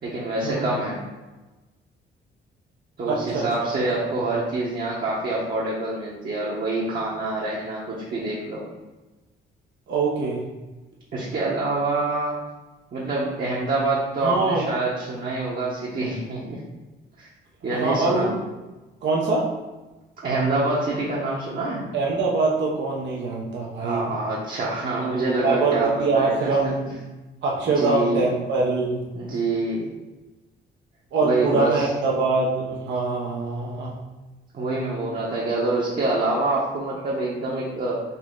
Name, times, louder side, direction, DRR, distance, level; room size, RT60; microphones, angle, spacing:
voice 1, 0.0-1.0 3.0-8.6 11.1-12.4 12.9-16.6 17.2-17.3 17.6-18.3 20.2-21.9 23.8-26.7 27.6-28.3 29.1-29.9 31.2-31.9 34.5-38.0, right 2 dB, 50° right, -6 dB, 1.1 m, -26 dB
voice 2, 3.1-3.4 3.9-4.0 9.9-10.4 14.2-14.6 17.7-18.4 19.0-19.4 21.9-24.1 25.4-26.9 27.4-29.1 31.1-34.0, right 3 dB, 65° right, -3 dB, 0.8 m, -23 dB
4.1 x 3.0 x 3.8 m, 1.1 s
cardioid pair, 90°, 20 cm